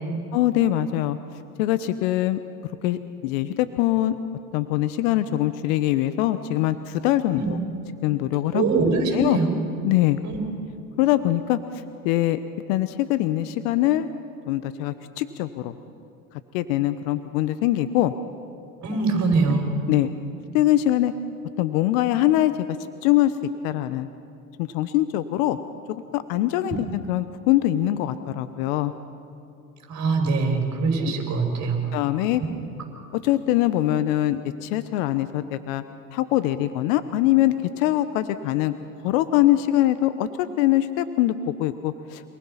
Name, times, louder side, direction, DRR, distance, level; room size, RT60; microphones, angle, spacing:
voice 1, 0.3-1.2 1.6-2.4 2.8-4.2 4.5-7.6 8.0-8.6 9.1-9.4 9.8-10.2 11.0-11.6 12.0-12.4 12.7-14.1 14.5-15.7 16.5-18.1 19.9-20.1 20.5-21.1 21.6-22.5 23.0-23.3 23.6-24.1 24.6-25.6 25.9-28.9 31.0-31.1 31.9-32.4 33.2-35.8 36.1-38.7 39.0-42.2, left 14 dB, 60° left, 12 dB, 1.0 m, -23 dB
voice 2, 8.5-9.5 10.2-10.4 18.8-19.7 26.7-26.8 29.9-31.8, right 4 dB, 40° right, 2 dB, 6.4 m, -23 dB
27.5 x 19.5 x 5.8 m, 2.6 s
hypercardioid pair, 85°, 45 cm